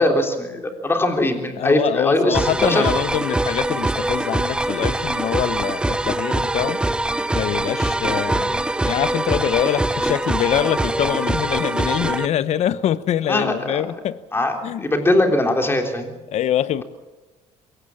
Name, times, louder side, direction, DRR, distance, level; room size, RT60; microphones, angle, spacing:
voice 1, 0.0-2.8 13.3-13.8 14.3-16.1, left 1 dB, 20° left, 4 dB, 3.5 m, -20 dB
voice 2, 1.6-6.8 7.3-14.2 14.6-14.8 16.3-16.8, left 11 dB, 60° left, 16 dB, 0.9 m, -24 dB
sound 1, 2.3-12.3, right 1 dB, 5° right, 0.7 m, -23 dB
22.0 x 18.0 x 7.2 m, 1.2 s
cardioid pair, 115°, 12 cm